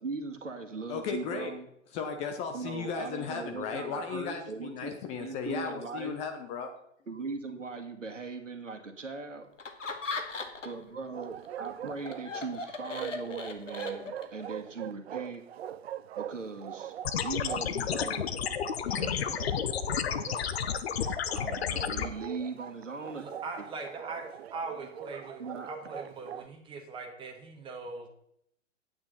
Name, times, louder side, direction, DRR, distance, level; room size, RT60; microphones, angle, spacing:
voice 1, 0.0-1.7 2.5-4.9 5.2-6.2 7.1-9.5 10.6-15.4 16.1-16.9 17.2-18.3 18.9-19.5 20.3-20.6 21.3-23.2 23.6-23.7 25.4-25.9, right 4 dB, 80° right, 6 dB, 1.7 m, -39 dB
voice 2, 0.9-1.5 1.9-6.7, left 6 dB, 20° left, 5 dB, 0.6 m, -35 dB
Laughter, 9.6-10.9 11.2-14.4, left 4 dB, 80° left, 1.3 m, -38 dB
Bark, 11.1-26.5, right 10 dB, 55° right, 0.5 m, -42 dB
sound 1, 17.0-22.1, left 8 dB, 55° left, 0.8 m, -31 dB
voice 3, 23.2-28.1, right 3 dB, 15° right, 2 dB, 1.5 m, -41 dB
9.4 x 8.9 x 3.9 m, 0.74 s
figure-of-eight pair, 120°, 37 cm